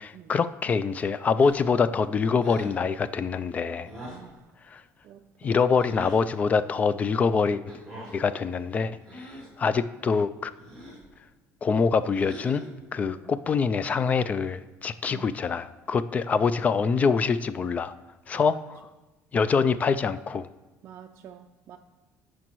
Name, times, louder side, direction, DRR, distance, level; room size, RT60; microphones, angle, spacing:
voice 1, 0.0-3.9 4.7-4.8 5.4-7.6 8.1-9.3 9.6-10.5 11.6-12.6 12.9-17.9 18.3-18.8 19.3-20.5, left 5 dB, 25° left, 14 dB, 0.3 m, -25 dB
sound 1, 1.4-1.8 2.4-2.8 3.8-4.3 5.8-6.2 7.7-8.2 9.0-9.6 10.6-11.1 12.1-12.8, equal, 10° left, 3.0 m, -42 dB
voice 2, 4.1-4.5 5.0-5.6 13.0-13.3 15.1-15.2 18.3-18.6 20.8-21.8, right 9 dB, 45° right, 3 dB, 0.4 m, -48 dB
15.0 x 6.3 x 3.0 m, 1.1 s
cardioid pair, 150°, 6 cm